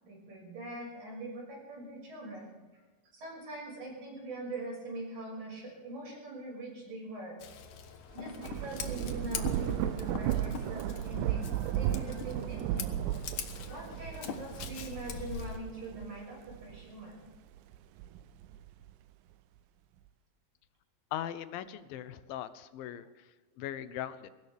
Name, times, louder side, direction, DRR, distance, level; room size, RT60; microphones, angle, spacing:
voice 1, 0.0-7.4 8.1-13.0 13.4-17.2, right 2 dB, 55° right, -1 dB, 7.8 m, -43 dB
Scissors, 7.4-15.6, left 7 dB, 65° left, 2.5 m, -43 dB
Thunder / Rain, 8.1-17.0 17.6-18.9, right 12 dB, 80° right, 2.3 m, -35 dB
voice 2, 21.1-24.3, left 11 dB, 90° left, 13 dB, 2.7 m, -40 dB
22.5 x 18.0 x 3.6 m, 1.3 s
omnidirectional pair, 4.0 m